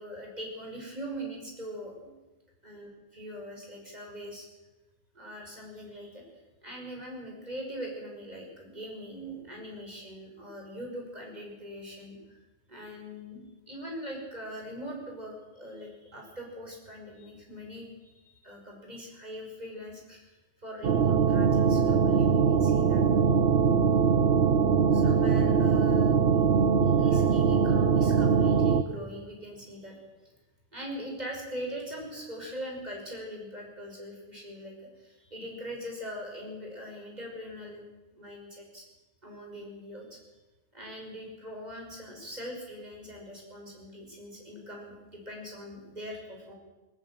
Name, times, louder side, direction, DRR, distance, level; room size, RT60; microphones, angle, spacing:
voice 1, 0.0-2.1 2.6-4.5 5.1-6.3 6.6-12.4 12.7-23.0 24.9-26.3 26.8-30.3 30.7-37.8 38.1-38.8 39.2-40.2 40.7-46.5, equal, 40° right, 0 dB, 6.4 m, -42 dB
sound 1, 20.8-28.8, right 6 dB, 70° right, 1.1 m, -22 dB
19.5 x 19.5 x 7.8 m, 1.1 s
omnidirectional pair, 1.1 m